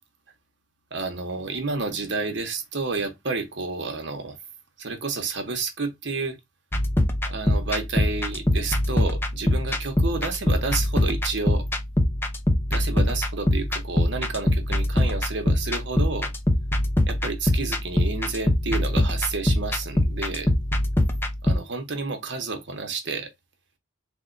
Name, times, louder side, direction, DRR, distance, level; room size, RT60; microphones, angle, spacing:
voice 1, 0.9-4.4 4.8-6.4 7.3-11.7 12.7-16.3 17.1-20.5 21.4-23.3, right 4 dB, 60° right, 0.8 m, -30 dB
sound 1, 6.7-21.6, left 1 dB, 10° left, 0.4 m, -23 dB
3.5 x 2.1 x 3.7 m
head